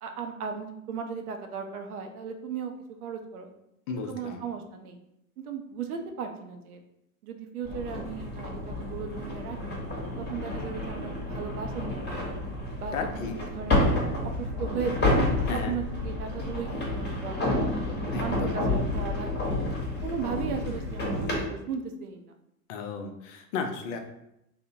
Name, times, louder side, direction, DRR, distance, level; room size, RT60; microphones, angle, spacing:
voice 1, 0.0-2.7 3.0-3.5 3.9-5.0 5.4-6.8 7.2-9.8 10.3-12.4 12.8-13.9 14.2-15.2 15.5-17.8 18.2-19.6 20.0-22.3, right 6 dB, 80° right, 5 dB, 0.6 m, -36 dB
voice 2, 3.9-4.4 12.9-13.4 15.5-15.8 18.1-18.6 22.7-24.0, left 5 dB, 55° left, 5 dB, 0.5 m, -34 dB
sound 1, 7.6-21.4, left 1 dB, 25° left, 0.9 m, -29 dB
2.7 x 2.0 x 2.7 m, 0.82 s
hypercardioid pair, 90°, 44 cm